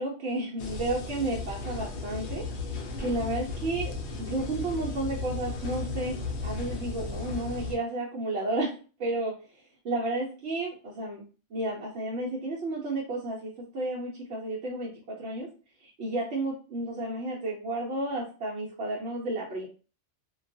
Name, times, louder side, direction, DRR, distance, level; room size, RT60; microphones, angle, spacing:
voice 1, 0.0-2.4 3.0-6.1 6.4-8.7 9.0-9.3 9.8-11.2 11.5-15.5 15.8-19.7, right 2 dB, 65° right, -4 dB, 0.8 m, -32 dB
sound 1, 0.6-7.7, left 3 dB, 70° left, 0.8 m, -35 dB
2.3 x 2.2 x 2.5 m, 0.36 s
omnidirectional pair, 1.2 m